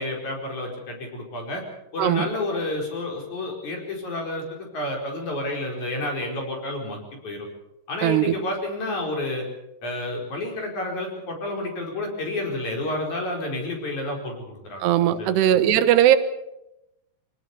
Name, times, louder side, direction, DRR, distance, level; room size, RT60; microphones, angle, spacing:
voice 1, 0.0-1.6 1.9-7.5 7.9-9.5 9.8-14.8 15.1-15.3, left 2 dB, 45° left, 1 dB, 5.9 m, -30 dB
voice 2, 8.0-8.3 14.8-16.2, right 11 dB, 85° right, 11 dB, 3.3 m, -19 dB
25.0 x 18.5 x 6.9 m, 0.87 s
omnidirectional pair, 4.7 m